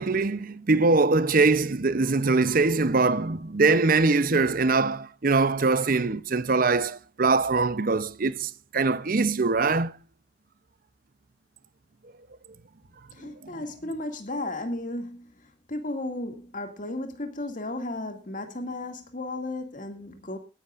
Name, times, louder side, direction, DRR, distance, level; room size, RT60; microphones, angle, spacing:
voice 1, 0.0-10.0 13.2-13.5, right 3 dB, 45° right, 0.7 m, -23 dB
voice 2, 13.1-15.3 15.7-20.4, left 2 dB, 45° left, 2.3 m, -34 dB
17.5 x 11.0 x 2.5 m
head